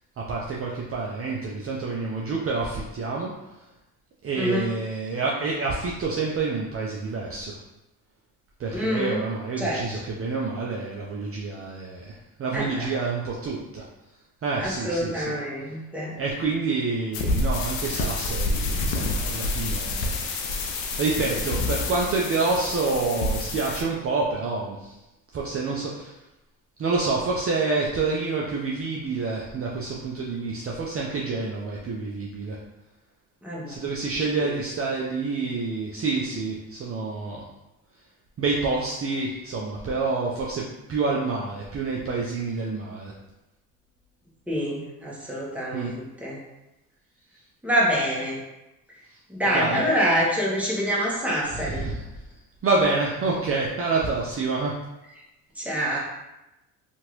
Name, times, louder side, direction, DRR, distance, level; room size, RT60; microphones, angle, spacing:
voice 1, 0.2-3.3 4.2-7.6 8.6-13.8 14.4-15.4 16.2-20.2 21.0-25.0 25.3-26.2 26.8-32.6 33.7-37.4 38.4-43.1 45.7-45.9 49.5-49.8 51.5-52.0 52.6-54.7, right 3 dB, 35° right, -3 dB, 0.5 m, -28 dB
voice 2, 4.3-4.7 8.7-9.2 9.6-9.8 12.5-12.9 14.6-16.1 33.4-33.8 34.4-34.5 44.5-46.4 47.6-48.4 49.3-51.9 55.6-56.0, equal, 5° right, -6 dB, 1.2 m, -26 dB
sound 1, 17.1-23.8, left 2 dB, 85° left, 0.6 m, -28 dB
2.8 x 2.6 x 3.1 m, 0.94 s
supercardioid pair, 70°, 39 cm